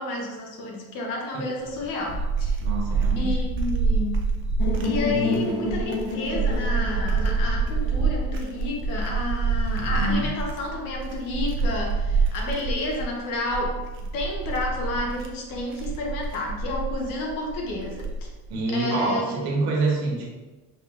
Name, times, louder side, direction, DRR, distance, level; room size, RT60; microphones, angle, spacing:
voice 1, 0.0-2.6 3.2-4.2 4.8-18.3 18.7-19.5, left 2 dB, 55° left, -1 dB, 1.1 m, -30 dB
sound 1, 1.6-18.5, right 4 dB, 35° right, 0.4 m, -27 dB
voice 2, 2.6-3.4 5.1-5.5 9.8-10.3 18.5-20.3, right 2 dB, 85° right, -2 dB, 1.4 m, -27 dB
sound 2, 4.6-8.5, left 2 dB, 30° left, 0.8 m, -31 dB
5.4 x 3.7 x 2.4 m, 1.2 s
cardioid pair, 180°, 38 cm